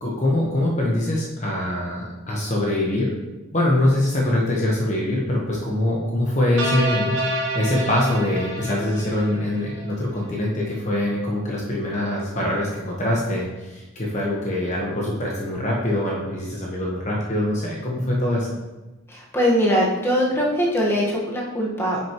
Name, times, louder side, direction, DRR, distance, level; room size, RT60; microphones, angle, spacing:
voice 1, 0.0-3.1 3.5-7.1 7.5-18.6, left 1 dB, 35° left, -3 dB, 1.1 m, -23 dB
sound 1, 6.6-9.9, right 1 dB, 65° right, 1.9 m, -28 dB
voice 2, 19.1-22.0, equal, 10° left, -4 dB, 1.4 m, -21 dB
9.4 x 6.3 x 3.0 m, 1.1 s
head